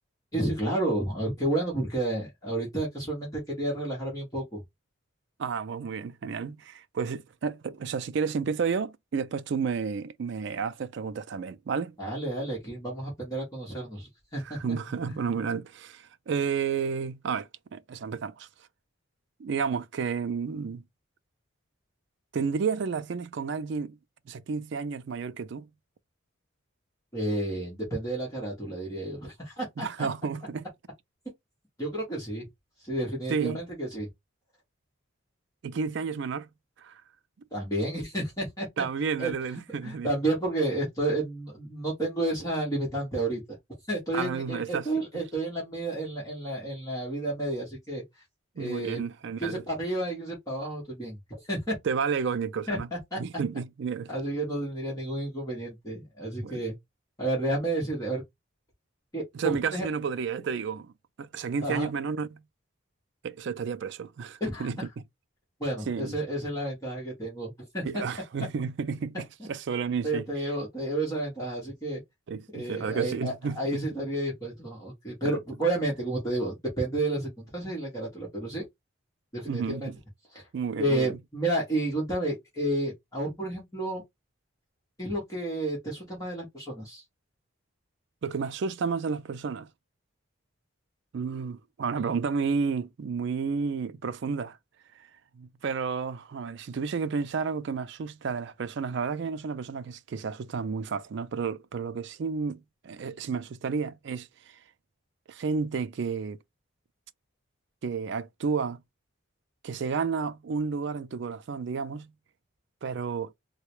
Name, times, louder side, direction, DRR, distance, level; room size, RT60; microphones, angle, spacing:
voice 1, 0.3-4.6 12.0-14.6 15.1-15.2 27.1-29.9 31.8-32.4 32.8-34.1 37.5-38.7 39.2-39.3 39.8-43.4 43.9-48.0 48.6-49.0 49.4-51.7 52.7-52.8 53.1-53.2 54.1-56.7 57.2-58.2 59.1-59.9 61.6-61.9 64.4-64.7 65.6-67.8 70.0-72.0 72.5-78.6 79.3-79.9 80.3-80.4 80.8-84.0 85.0-87.0, right 1 dB, 15° left, 1.3 m, -31 dB
voice 2, 5.4-12.0 14.4-18.5 19.4-20.8 22.3-24.0 24.3-25.7 29.8-30.7 33.3-33.6 35.6-36.5 36.8-37.0 38.8-40.1 44.1-44.9 48.6-49.6 51.8-52.9 53.2-54.1 56.4-56.6 59.3-60.9 61.2-62.4 63.2-64.8 65.9-66.1 67.8-70.2 72.3-73.8 75.2-75.4 79.5-80.0 80.5-81.2 88.2-89.7 91.1-94.6 95.0-95.1 95.4-104.6 105.3-106.4 107.8-108.8 109.6-112.1 112.8-113.3, right 5 dB, 55° right, 0.3 m, -31 dB
3.6 x 2.2 x 3.0 m
head